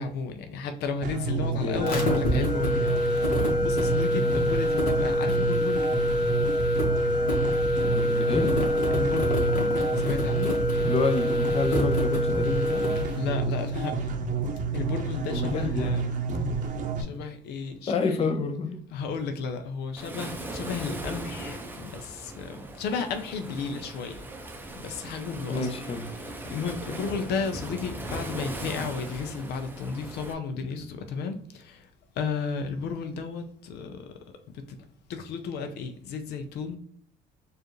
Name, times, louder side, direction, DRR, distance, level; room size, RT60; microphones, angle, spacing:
voice 1, 0.0-5.8 8.9-9.5 10.0-10.5 13.2-14.1 14.7-16.2 17.0-18.3 18.9-24.3 24.7-25.8 26.2-31.9 32.2-34.1 34.7-34.8 35.1-36.8, left 5 dB, 75° left, 7 dB, 0.5 m, -33 dB
sound 1, 1.0-17.0, right 4 dB, 50° right, 0.7 m, -30 dB
voice 2, 1.5-1.8 4.1-4.3 7.7-8.6 10.8-12.8 15.3-15.9 17.9-18.8 25.5-26.1, left 4 dB, 35° left, 6 dB, 0.6 m, -29 dB
sound 2, 1.8-13.1, left 1 dB, 55° left, 1.4 m, -26 dB
Waves surf, 20.0-30.3, right 1 dB, 10° right, 0.5 m, -38 dB
4.6 x 2.5 x 3.0 m, 0.62 s
cardioid pair, 110°, 17 cm